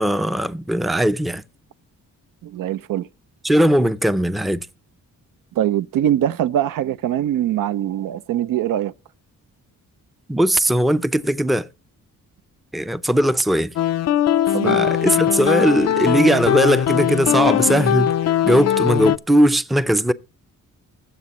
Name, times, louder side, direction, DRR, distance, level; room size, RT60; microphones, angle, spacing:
voice 1, 0.0-1.4 3.4-4.7 10.3-11.7 12.7-13.7 14.6-18.1 18.4-20.1, right 1 dB, ahead, 0.4 m, -19 dB
voice 2, 2.4-3.1 5.6-8.9 14.5-15.1, right 11 dB, 75° right, 0.5 m, -22 dB
sound 1, 13.8-19.2, left 11 dB, 55° left, 0.4 m, -20 dB
20.0 x 7.5 x 3.0 m
cardioid pair, 105°, 33 cm